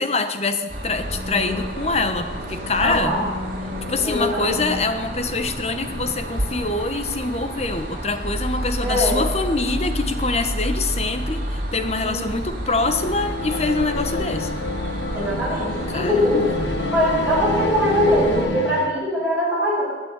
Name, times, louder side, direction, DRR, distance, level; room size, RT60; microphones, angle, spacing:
voice 1, 0.0-3.1 3.9-14.6 15.9-16.6, left 3 dB, 35° left, 8 dB, 1.2 m, -25 dB
sound 1, 0.7-18.4, equal, 50° right, 3.7 m, -29 dB
voice 2, 2.8-3.2 4.0-4.6 8.8-9.2 12.0-12.3 15.1-16.5 16.9-19.8, equal, 5° right, -11 dB, 7.6 m, -22 dB
sound 2, 12.6-18.9, left 2 dB, 85° left, 1.4 m, -29 dB
20.0 x 8.7 x 8.2 m, 1.3 s
head